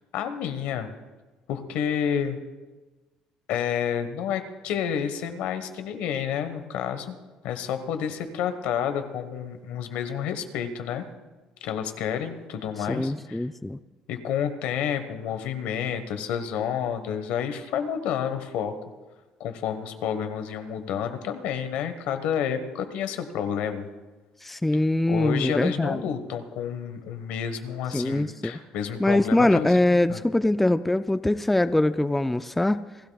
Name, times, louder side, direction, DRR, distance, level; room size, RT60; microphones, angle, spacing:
voice 1, 0.1-0.9 1.5-2.4 3.5-7.2 7.4-11.0 11.6-13.4 14.1-18.7 19.4-23.9 25.1-29.8 30.1-30.2, left 8 dB, 75° left, 9 dB, 1.3 m, -29 dB
voice 2, 12.9-13.8 24.4-26.0 27.9-28.6 29.0-32.9, left 1 dB, 5° left, 12 dB, 0.3 m, -23 dB
28.5 x 12.5 x 2.4 m, 1.2 s
cardioid pair, 120°, 2 cm